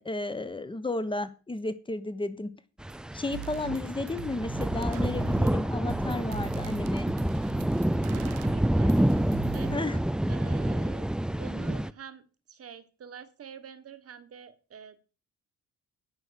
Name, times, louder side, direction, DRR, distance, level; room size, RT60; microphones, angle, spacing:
voice 1, 0.0-2.5 3.1-7.1 9.7-10.0, left 2 dB, 15° left, 12 dB, 1.2 m, -33 dB
sound 1, 2.8-11.9, right 1 dB, 5° right, 0.4 m, -28 dB
sound 2, 2.9-3.0 3.3-9.8, right 16 dB, 85° right, 0.6 m, -43 dB
voice 2, 8.0-10.0 10.3-11.1 11.4-15.0, right 8 dB, 50° right, 11 dB, 1.4 m, -46 dB
9.8 x 5.5 x 6.4 m, 0.36 s
cardioid pair, 90°, 30 cm